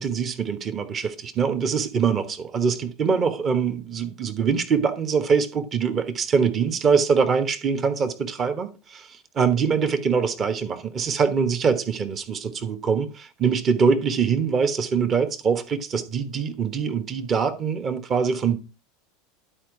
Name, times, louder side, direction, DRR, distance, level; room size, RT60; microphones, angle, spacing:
voice 1, 0.0-18.6, right 6 dB, 35° right, 1.2 m, -23 dB
11.5 x 4.5 x 4.8 m
hypercardioid pair, 85°, 0 cm